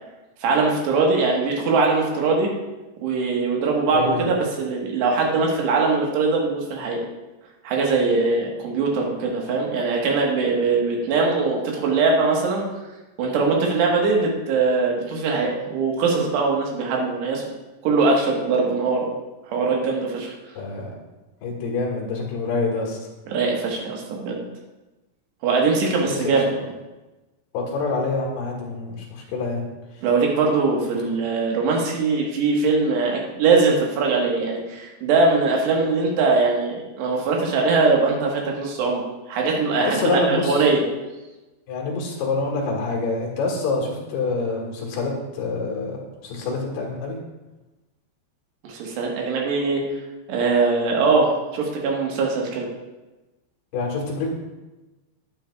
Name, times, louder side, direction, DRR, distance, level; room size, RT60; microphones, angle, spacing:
voice 1, 0.4-2.5 3.0-7.0 7.6-12.9 13.2-17.4 17.8-19.0 19.5-20.3 23.3-24.4 25.4-26.5 30.0-40.8 48.6-49.8 50.3-52.7, right 4 dB, 70° right, -1 dB, 3.4 m, -21 dB
voice 2, 3.9-4.3 20.6-20.9 21.4-23.1 26.1-26.4 27.5-29.7 39.8-40.7 41.7-46.0 46.2-47.2 53.7-54.3, left 3 dB, 65° left, -2 dB, 3.5 m, -26 dB
11.5 x 9.0 x 2.3 m, 1.1 s
omnidirectional pair, 5.3 m